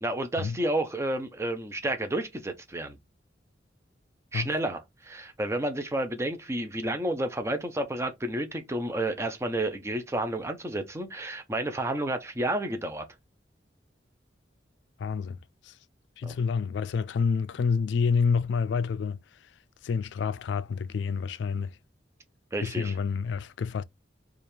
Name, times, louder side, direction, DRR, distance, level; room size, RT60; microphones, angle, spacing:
voice 1, 0.0-3.0 4.3-13.1 16.2-16.3 22.5-22.9, right 1 dB, 15° right, 0.5 m, -31 dB
voice 2, 15.0-15.8 16.2-19.5 19.8-21.8 22.6-23.8, left 5 dB, 70° left, 0.3 m, -28 dB
3.4 x 2.4 x 4.3 m
head